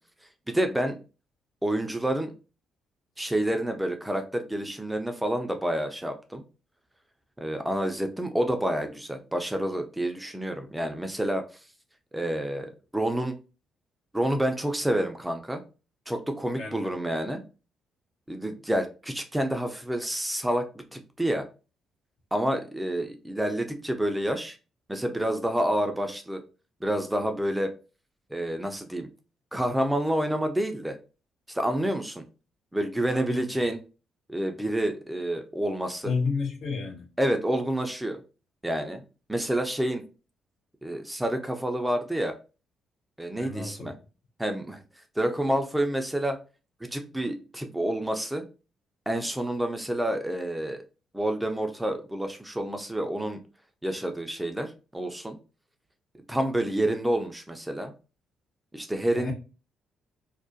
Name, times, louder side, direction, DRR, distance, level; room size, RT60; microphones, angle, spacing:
voice 1, 0.5-1.0 1.6-2.3 3.2-6.4 7.4-11.4 12.1-13.4 14.1-15.6 16.1-17.4 18.3-21.4 22.3-24.6 24.9-26.4 26.8-27.7 28.3-29.1 29.5-31.0 31.5-32.2 32.7-33.8 34.3-36.1 37.2-38.2 38.6-39.0 39.3-40.0 40.8-42.3 43.2-43.9 44.4-44.8 45.2-46.4 46.8-48.4 49.1-50.8 51.1-53.4 53.8-55.4 56.3-57.9 58.7-59.3, right 1 dB, 10° right, 0.4 m, -28 dB
voice 2, 16.6-16.9 33.1-33.4 36.0-37.1 43.3-43.9 59.1-59.3, left 4 dB, 60° left, 0.7 m, -31 dB
2.3 x 2.1 x 2.6 m
hypercardioid pair, 45°, 0 cm